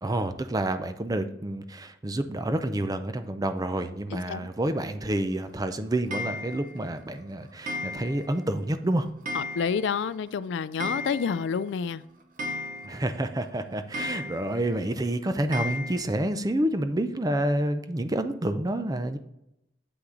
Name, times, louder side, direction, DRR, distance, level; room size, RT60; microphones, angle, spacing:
voice 1, 0.0-9.1 12.8-19.2, right 1 dB, 20° right, 9 dB, 0.5 m, -28 dB
voice 2, 4.1-4.5 9.3-12.0, left 6 dB, 80° left, 17 dB, 0.3 m, -29 dB
Clock, 6.1-6.8 7.7-8.4 8.7-8.8 9.3-10.0 10.3-10.4 10.6-11.6 11.9-12.0 12.4-13.2 13.9-14.7 15.5-16.0, left 2 dB, 50° right, 0.9 m, -35 dB
8.1 x 5.8 x 3.9 m, 0.83 s
head